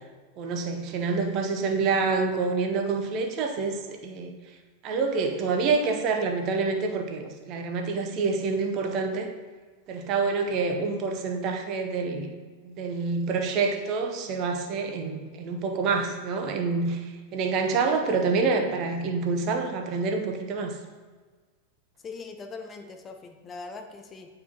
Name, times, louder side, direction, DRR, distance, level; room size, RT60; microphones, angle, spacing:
voice 1, 0.4-4.3 4.8-9.3 9.9-12.3 12.6-20.8, right 4 dB, 40° right, 4 dB, 0.7 m, -27 dB
voice 2, 22.0-24.3, left 4 dB, 20° left, 5 dB, 0.6 m, -41 dB
9.2 x 4.7 x 2.9 m, 1.4 s
figure-of-eight pair, 90°, 0 cm